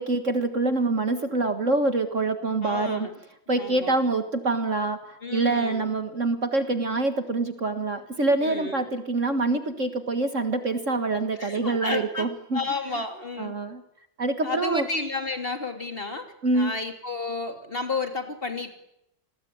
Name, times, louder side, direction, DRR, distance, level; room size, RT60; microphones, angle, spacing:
voice 1, 0.0-3.1 3.5-12.6 13.4-13.8 14.2-14.9 16.4-16.7, right 2 dB, 45° right, 8 dB, 1.9 m, -25 dB
voice 2, 2.6-3.1 3.5-3.9 5.2-5.9 8.4-8.8 11.4-12.3 12.5-13.5 14.4-16.3 16.5-18.7, left 3 dB, 30° left, 6 dB, 3.0 m, -31 dB
28.5 x 20.5 x 9.4 m, 0.81 s
omnidirectional pair, 2.0 m